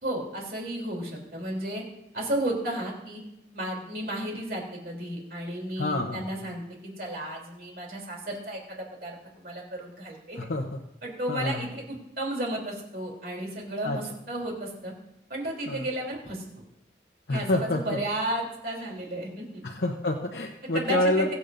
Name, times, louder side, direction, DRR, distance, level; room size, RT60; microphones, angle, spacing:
voice 1, 0.0-1.8 2.1-3.2 3.5-6.6 7.0-10.5 11.0-14.9 15.3-16.4 17.3-19.6 20.7-21.3, right 1 dB, 55° right, 0 dB, 3.3 m, -33 dB
voice 2, 5.8-6.2 10.4-10.7 11.3-11.6 13.8-14.0 15.7-15.8 17.3-18.0 19.6-21.3, left 1 dB, 75° left, 2 dB, 0.8 m, -27 dB
22.0 x 8.3 x 2.6 m, 0.86 s
head